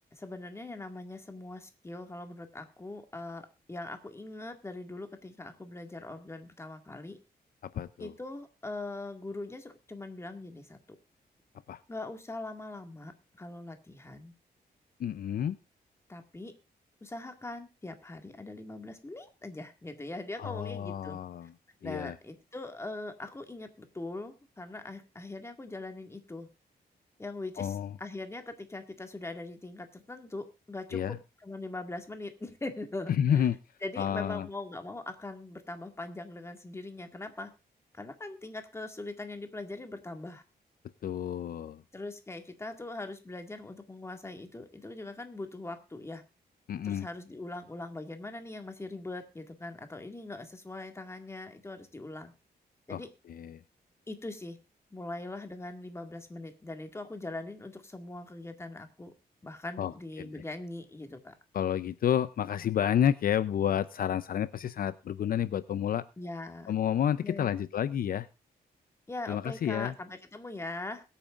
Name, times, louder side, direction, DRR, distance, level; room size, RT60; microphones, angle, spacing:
voice 1, 0.1-7.2 8.0-10.8 11.9-13.1 13.4-14.3 16.1-16.5 17.0-21.5 21.8-26.5 27.2-33.5 33.8-37.5 37.9-40.4 41.9-46.2 46.8-52.3 52.9-53.1 54.1-54.6 54.9-59.1 59.4-61.3 66.2-66.7 67.2-67.6 69.1-71.0, left 2 dB, 15° left, 6 dB, 1.9 m, -41 dB
voice 2, 7.6-8.1 11.7-11.8 15.0-15.6 20.4-21.5 21.8-22.1 27.6-27.9 30.9-31.2 33.2-33.6 34.0-34.5 41.0-41.8 46.7-47.1 52.9-53.0 53.3-53.6 59.8-59.9 60.2-60.3 61.5-66.1 66.7-68.3 69.3-69.9, left 9 dB, 65° left, 15 dB, 0.6 m, -30 dB
22.0 x 8.9 x 2.5 m, 0.29 s
wide cardioid pair, 135°, 16 cm